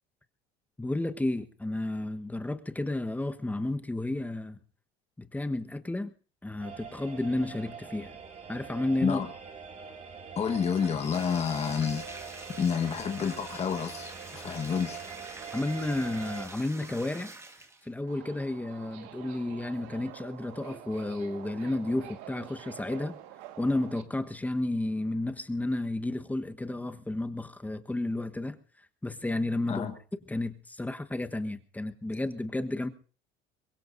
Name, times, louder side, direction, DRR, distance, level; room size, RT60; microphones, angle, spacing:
voice 1, 0.8-4.6 5.2-6.1 6.4-8.1 8.5-9.2 15.5-17.3 17.8-23.1 23.6-28.6 29.0-29.9 30.3-32.9, left 2 dB, 10° left, 1.3 m, -32 dB
sound 1, 6.6-16.5, right 6 dB, 40° right, 2.7 m, -43 dB
voice 2, 10.3-15.0 29.7-29.9, left 7 dB, 35° left, 1.5 m, -30 dB
Bathtub (filling or washing), 10.7-18.0, right 2 dB, 15° right, 1.6 m, -46 dB
Subway metro underground, 18.1-24.0, right 12 dB, 80° right, 1.8 m, -47 dB
24.0 x 21.0 x 2.7 m
supercardioid pair, 105°, 19 cm